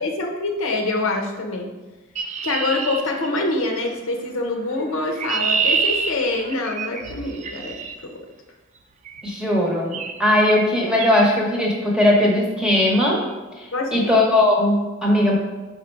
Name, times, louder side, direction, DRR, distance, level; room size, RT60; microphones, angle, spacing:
voice 1, 0.0-1.7 2.4-7.8 8.0-8.1 13.7-14.1, left 2 dB, 75° left, 1 dB, 0.8 m, -25 dB
Chirp tweet, 2.2-3.8 4.8-8.0 9.1-9.3 9.9-10.2 10.4-10.7 11.0-11.3, right 5 dB, 35° right, 0.4 m, -26 dB
voice 2, 9.2-13.2 13.6-15.4, left 1 dB, 5° right, -3 dB, 1.1 m, -19 dB
5.2 x 4.3 x 4.5 m, 1.2 s
head